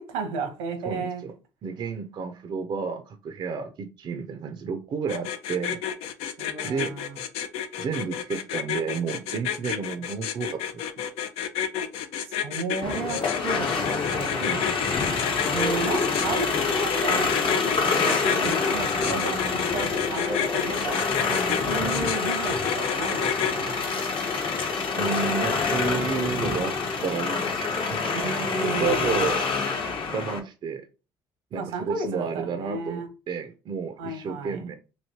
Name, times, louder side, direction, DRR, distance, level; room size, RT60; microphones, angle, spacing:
voice 1, 0.0-1.2 6.4-7.2 12.3-14.6 15.5-21.1 21.6-23.9 28.1-29.3 31.5-33.1 34.0-34.6, right 3 dB, 80° right, 1.0 m, -33 dB
voice 2, 0.8-1.4 1.6-6.1 6.6-7.0 7.8-11.0 14.1-15.0 19.1-19.9 21.3-21.8 24.1-24.5 25.0-28.4 28.6-29.4 30.1-30.9 31.5-34.7, right 6 dB, 50° right, 0.5 m, -32 dB
sound 1, 5.1-23.5, left 9 dB, 75° left, 0.4 m, -30 dB
sound 2, 12.8-30.4, left 4 dB, 55° left, 0.9 m, -26 dB
3.1 x 2.7 x 2.7 m
hypercardioid pair, 65°, 10 cm